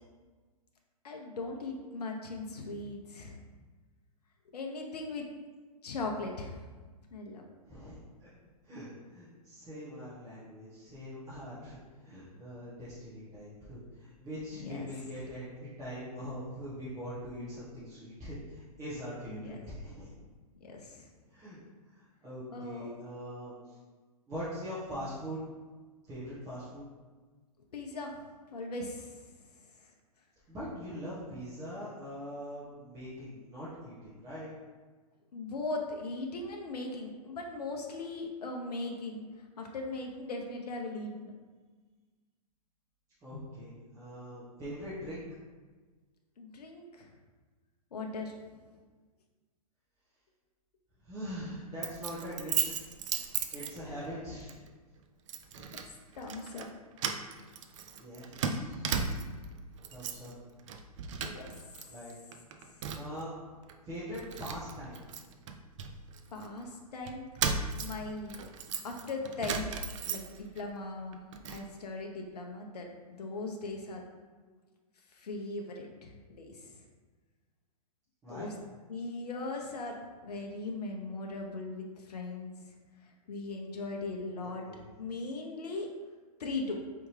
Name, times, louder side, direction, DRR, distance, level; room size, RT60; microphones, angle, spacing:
voice 1, 1.0-3.4 4.5-5.3 5.8-6.7 7.1-7.5 14.5-14.9 19.3-19.7 20.6-21.1 22.5-23.0 27.7-29.2 29.8-29.9 35.3-41.3 46.4-47.1 47.9-48.6 53.8-54.3 56.1-56.7 61.2-61.5 66.3-67.2 67.8-68.4 68.8-69.6 70.1-71.2 71.5-74.0 75.1-76.8 78.3-78.5 78.9-80.0 80.2-82.5 83.0-84.6 85.0-85.9 86.4-86.8, left 3 dB, 75° left, 1 dB, 0.7 m, -39 dB
voice 2, 7.7-8.3 8.7-20.1 21.3-21.6 21.9-23.7 24.3-25.4 26.1-26.8 30.5-34.5 43.2-45.2 51.0-52.8 53.5-54.6 55.5-55.7 58.0-59.2 59.9-60.3 61.9-62.1 62.9-63.3 63.8-65.0 78.2-78.5 84.7-84.9, equal, 15° right, -12 dB, 1.3 m, -42 dB
Keys jangling, 51.8-54.1 54.5-54.7 55.3-55.9 56.2-56.7 57.0-59.5 59.8-60.3 60.6-61.8 62.1-63.2 63.7-63.8 64.1-66.5 67.1-70.6 71.0-71.6, right 6 dB, 50° right, 0.5 m, -36 dB
4.6 x 3.4 x 3.2 m, 1.4 s
hypercardioid pair, 130°, 20 cm